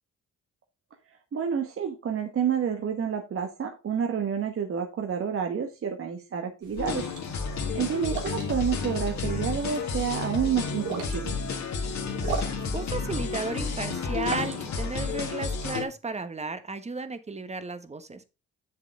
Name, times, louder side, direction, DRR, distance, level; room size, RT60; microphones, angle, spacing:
voice 1, 1.3-7.1 7.7-11.3, right 7 dB, 45° right, 1.2 m, -29 dB
sound 1, 6.6-15.1, right 5 dB, 90° right, 3.0 m, -40 dB
sound 2, 6.8-15.8, left 4 dB, 65° left, 2.3 m, -31 dB
voice 2, 12.7-18.2, right 3 dB, 20° right, 1.2 m, -34 dB
7.5 x 6.8 x 3.6 m
cardioid pair, 90°, 30 cm